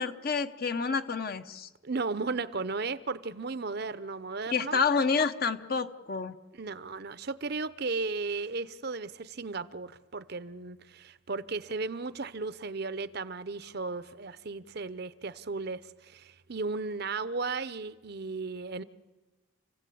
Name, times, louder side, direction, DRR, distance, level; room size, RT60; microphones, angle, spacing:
voice 1, 0.0-1.7 4.5-6.4, left 5 dB, 45° left, 1.0 m, -29 dB
voice 2, 1.8-4.8 6.6-18.8, right 3 dB, 50° right, 0.7 m, -35 dB
30.0 x 16.0 x 8.5 m
head